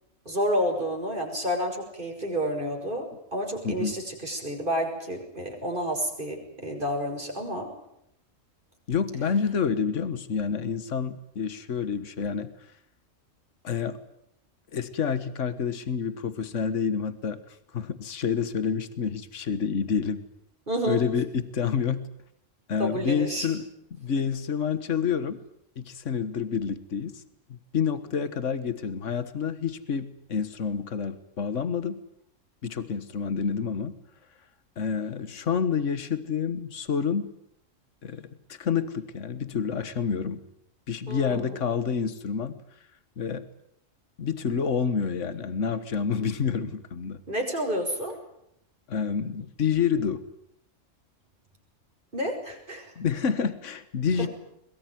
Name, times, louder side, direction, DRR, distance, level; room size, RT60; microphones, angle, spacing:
voice 1, 0.3-7.7 20.7-21.0 22.8-23.5 41.1-41.6 47.3-48.2 52.1-52.9 54.2-54.3, equal, 40° right, 2 dB, 6.1 m, -30 dB
voice 2, 8.9-12.5 13.6-14.0 14.7-17.4 17.7-20.2 20.9-22.1 22.7-23.6 24.0-25.4 25.8-27.2 27.5-32.0 32.6-34.0 34.8-37.3 38.0-40.4 40.9-42.6 43.2-43.4 44.2-47.2 48.9-50.2 53.0-54.3, left 6 dB, 70° left, 13 dB, 1.7 m, -28 dB
23.0 x 22.0 x 9.4 m, 0.77 s
omnidirectional pair, 1.3 m